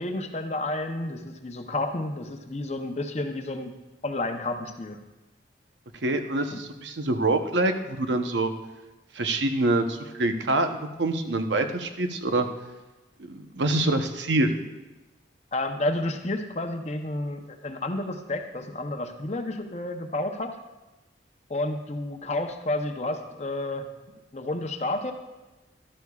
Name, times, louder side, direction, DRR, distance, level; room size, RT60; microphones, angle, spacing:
voice 1, 0.0-3.8 4.0-5.0 6.5-6.6 15.5-20.6 21.5-23.9 24.3-25.1, left 2 dB, 35° left, 5 dB, 0.7 m, -30 dB
voice 2, 6.0-8.5 9.1-12.5 13.3-14.5, right 2 dB, 80° right, 6 dB, 0.8 m, -25 dB
13.0 x 12.0 x 2.4 m, 1.1 s
head